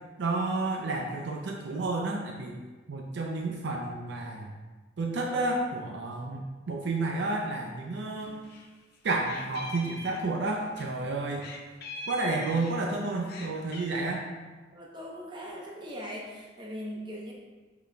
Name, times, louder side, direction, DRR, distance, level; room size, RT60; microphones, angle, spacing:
voice 1, 0.2-2.6 2.9-4.5 5.0-8.4 9.0-11.5 12.1-14.2, right 2 dB, 60° right, 1 dB, 0.4 m, -31 dB
Meow, 8.1-8.7 8.9-10.9 11.4-12.9 13.2-14.0, left 3 dB, 55° left, 0.5 m, -43 dB
voice 2, 14.7-17.3, equal, 25° right, -3 dB, 0.8 m, -40 dB
5.8 x 3.8 x 2.2 m, 1.3 s
head